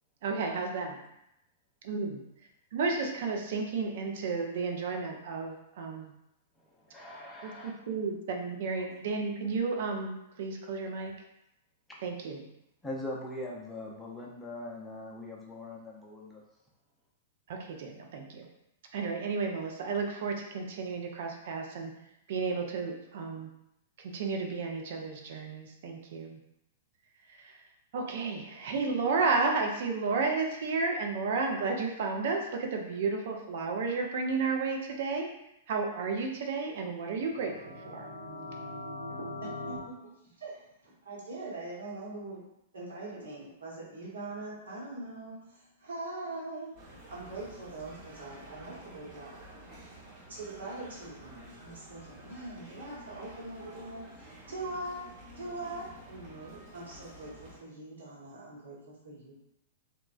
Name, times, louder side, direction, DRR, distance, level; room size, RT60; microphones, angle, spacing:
voice 1, 0.2-1.0 1.8-2.3 2.7-6.1 7.4-11.1 12.0-12.5 17.5-18.5 18.9-21.9 22.3-23.5 24.0-26.4 27.3-27.6 27.9-35.3 35.7-38.1, right 4 dB, 55° right, 2 dB, 0.5 m, -32 dB
voice 2, 6.6-7.7 8.8-8.9 11.9-12.0 12.8-16.4, left 1 dB, 10° left, -4 dB, 0.5 m, -41 dB
sound 1, 37.2-39.8, left 2 dB, 65° left, 0.8 m, -41 dB
voice 3, 39.2-42.4 42.7-46.8 47.1-49.3 50.3-54.0 54.5-55.0 55.3-59.4, right 2 dB, 75° right, -6 dB, 1.1 m, -42 dB
sound 2, 46.7-57.6, equal, 40° right, 1.0 m, -50 dB
3.0 x 2.1 x 2.3 m, 0.85 s
figure-of-eight pair, 105°, 0 cm